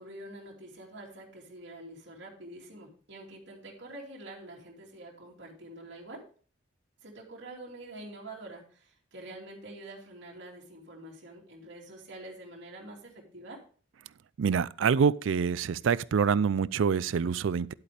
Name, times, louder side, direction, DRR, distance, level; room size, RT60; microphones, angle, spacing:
voice 1, 0.0-6.2 7.0-8.8 9.1-13.6, right 1 dB, 65° right, 2.7 m, -46 dB
voice 2, 14.4-17.7, right 6 dB, 80° right, 0.4 m, -26 dB
10.5 x 8.5 x 3.3 m
head